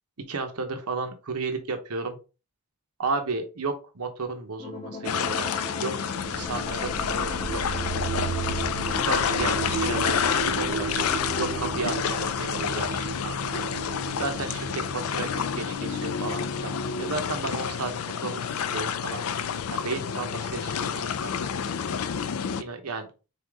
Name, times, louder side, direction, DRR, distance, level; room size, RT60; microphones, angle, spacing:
voice 1, 0.3-2.2 3.0-5.9 6.3-7.6 8.9-13.6 14.2-15.3 15.5-17.9 18.2-19.3 19.7-21.3 22.6-23.1, right 3 dB, 90° right, 5 dB, 0.9 m, -33 dB
sound 1, 4.6-11.7, left 3 dB, 20° left, 1.0 m, -38 dB
sound 2, 5.0-22.6, left 7 dB, 75° left, 0.4 m, -29 dB
sound 3, 6.1-17.9, right 6 dB, 60° right, 0.5 m, -35 dB
4.1 x 3.7 x 3.5 m, 0.31 s
head